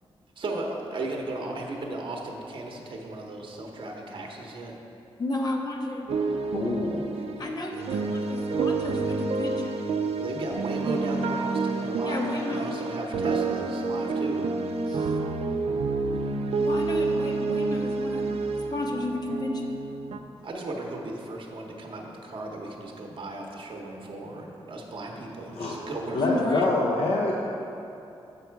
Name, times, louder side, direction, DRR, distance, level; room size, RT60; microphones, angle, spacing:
voice 1, 0.4-4.8 10.2-14.5 20.4-26.5, right 2 dB, 55° right, 0 dB, 0.8 m, -36 dB
voice 2, 5.2-6.1 7.4-9.9 12.0-12.8 14.9-15.2 16.6-19.8 26.2-26.8, left 2 dB, 40° left, 1 dB, 0.7 m, -32 dB
sound 1, 6.1-20.2, right 3 dB, 80° right, 0.5 m, -29 dB
voice 3, 6.5-7.2 25.5-25.7 26.1-27.3, left 2 dB, 75° left, -3 dB, 0.7 m, -26 dB
7.1 x 5.3 x 4.6 m, 2.8 s
wide cardioid pair, 105°, 10 cm